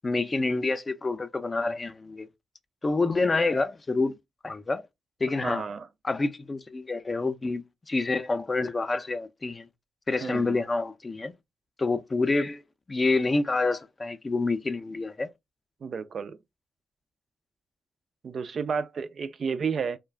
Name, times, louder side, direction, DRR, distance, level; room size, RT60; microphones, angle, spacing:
voice 1, 0.0-2.3 2.8-4.1 4.4-4.8 5.2-5.6 6.0-9.7 10.1-11.3 11.8-12.6 12.9-15.3, left 3 dB, 30° left, 0.4 m, -27 dB
voice 2, 5.4-5.9 10.2-10.6 15.8-16.4 18.2-20.0, right 6 dB, 55° right, 0.3 m, -31 dB
2.4 x 2.1 x 3.2 m
cardioid pair, 70°, 0 cm